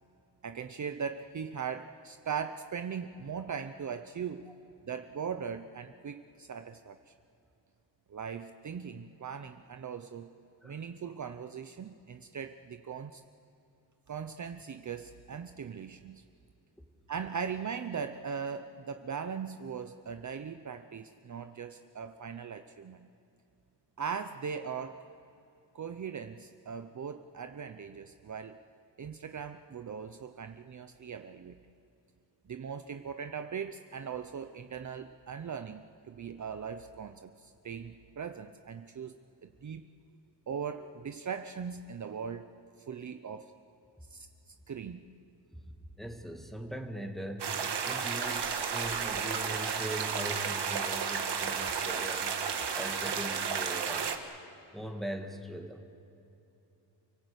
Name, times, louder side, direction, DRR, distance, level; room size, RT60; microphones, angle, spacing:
voice 1, 0.4-4.5 4.9-7.1 8.1-10.3 10.6-13.2 14.1-16.2 17.1-23.1 24.0-25.0 25.7-28.6 29.0-31.6 32.5-39.9 40.5-42.5 42.9-43.5 44.1-45.1, right 6 dB, 45° right, 8 dB, 0.7 m, -39 dB
voice 2, 46.0-47.6 47.8-54.2 54.7-55.8, equal, ahead, 2 dB, 2.0 m, -41 dB
sound 1, 47.4-54.2, right 6 dB, 70° right, 1.7 m, -32 dB
29.0 x 18.0 x 8.1 m, 2.8 s
wide cardioid pair, 150°, 42 cm